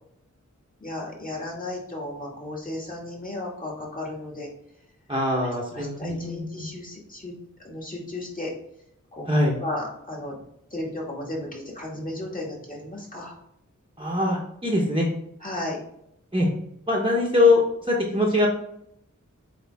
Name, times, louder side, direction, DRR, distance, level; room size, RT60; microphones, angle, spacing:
voice 1, 0.8-4.5 5.7-7.3 7.6-8.5 9.1-9.3 9.6-10.4 10.7-13.4 15.4-15.8, left 1 dB, 25° left, -3 dB, 2.2 m, -34 dB
voice 2, 5.1-6.7 9.3-9.6 14.0-15.1 16.3-16.5 16.9-18.5, left 2 dB, 15° right, -3 dB, 1.2 m, -22 dB
8.1 x 3.5 x 3.6 m, 0.76 s
wide cardioid pair, 65°, 31 cm